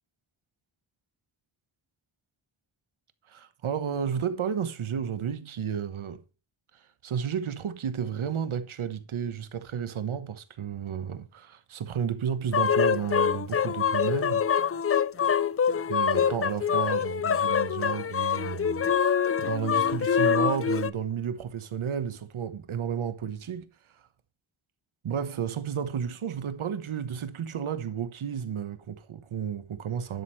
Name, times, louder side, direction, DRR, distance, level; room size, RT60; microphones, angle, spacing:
voice 1, 3.2-6.2 6.7-14.5 15.9-24.1 25.0-30.2, right 8 dB, 90° right, 1.1 m, -32 dB
sound 1, 12.5-20.9, left 7 dB, 30° left, 0.4 m, -25 dB
11.0 x 6.3 x 4.6 m
wide cardioid pair, 105°, 47 cm